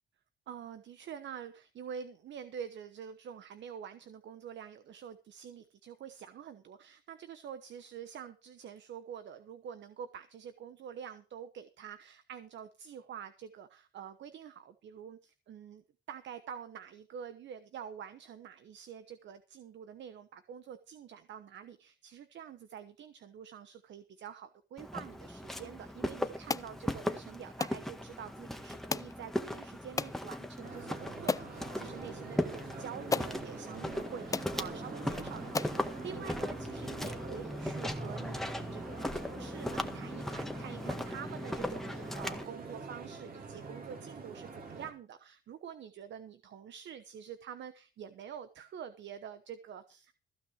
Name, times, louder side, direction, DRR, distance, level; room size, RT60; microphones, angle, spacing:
voice 1, 0.5-50.2, right 8 dB, 65° right, 11 dB, 1.1 m, -47 dB
Walk footsteps, 24.8-42.5, left 1 dB, ahead, 1.7 m, -38 dB
sound 1, 26.5-26.7 27.6-27.8 28.9-29.1 30.0-30.2 30.8-30.9 31.3-31.5 32.6-32.7 33.1-33.3 34.0-34.1 34.3-34.5 35.1-35.2 35.5-35.8, left 4 dB, 15° left, 0.5 m, -33 dB
sound 2, 30.6-44.9, right 4 dB, 50° right, 3.8 m, -46 dB
15.5 x 5.8 x 7.2 m, 0.33 s
cardioid pair, 90°, 20 cm